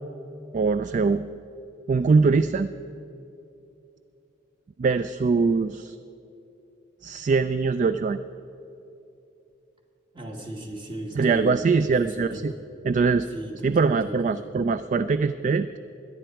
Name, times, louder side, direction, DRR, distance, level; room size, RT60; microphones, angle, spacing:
voice 1, 0.5-1.3 1.9-2.7 4.8-6.0 7.0-8.2 11.2-12.5 12.8-13.3 13.6-15.8, right 4 dB, 40° right, 13 dB, 0.3 m, -22 dB
voice 2, 10.1-12.6 13.3-14.5, right 1 dB, 25° right, 1 dB, 1.8 m, -36 dB
17.5 x 12.0 x 4.6 m, 2.9 s
head